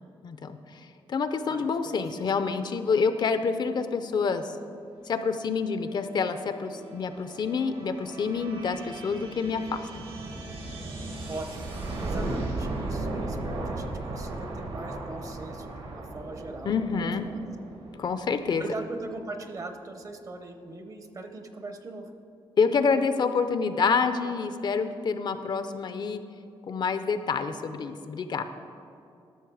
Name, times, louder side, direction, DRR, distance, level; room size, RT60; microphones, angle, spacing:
voice 1, 0.2-4.5 5.0-10.0 16.7-17.2 18.0-18.6 22.6-26.2 26.7-28.4, left 5 dB, 50° left, 10 dB, 0.5 m, -27 dB
voice 2, 1.5-2.2 11.3-11.7 12.0-17.4 18.6-22.1, right 2 dB, 35° right, 7 dB, 0.7 m, -40 dB
sound 1, 5.6-19.1, right 2 dB, 70° right, 1.6 m, -37 dB
12.5 x 6.3 x 4.8 m, 2.6 s
wide cardioid pair, 135°, 10 cm